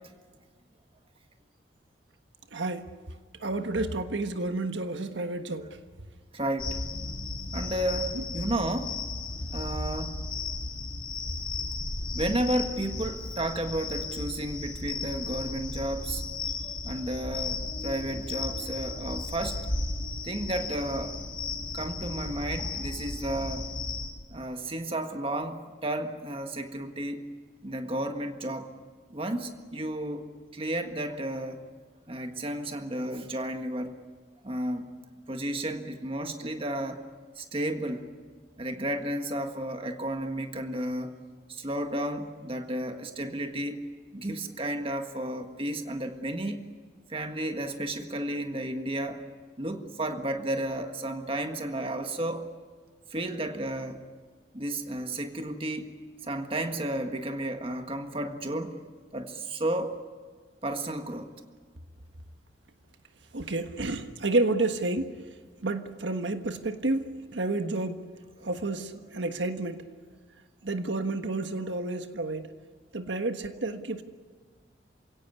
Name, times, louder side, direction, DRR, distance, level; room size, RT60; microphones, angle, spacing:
voice 1, 2.5-2.9 3.4-5.7 8.1-8.2 63.3-65.1 65.6-68.0 68.4-69.8 70.6-72.5 72.9-74.0, right 2 dB, 85° right, 1.4 m, -30 dB
voice 2, 6.3-6.8 7.5-8.9 9.5-10.2 12.1-16.2 16.8-19.6 20.2-21.2 21.7-23.7 24.3-27.3 27.6-28.7 29.1-30.3 30.5-31.6 32.1-33.9 34.4-34.9 35.3-37.0 37.4-38.1 38.6-41.1 41.5-43.8 44.1-46.6 47.1-49.2 49.6-52.5 53.1-54.0 54.5-55.9 56.2-58.8 59.1-59.9 60.6-61.3, right 1 dB, 30° right, 1.7 m, -32 dB
sound 1, 6.6-24.1, left 2 dB, 30° left, 4.5 m, -35 dB
28.5 x 17.0 x 9.6 m
head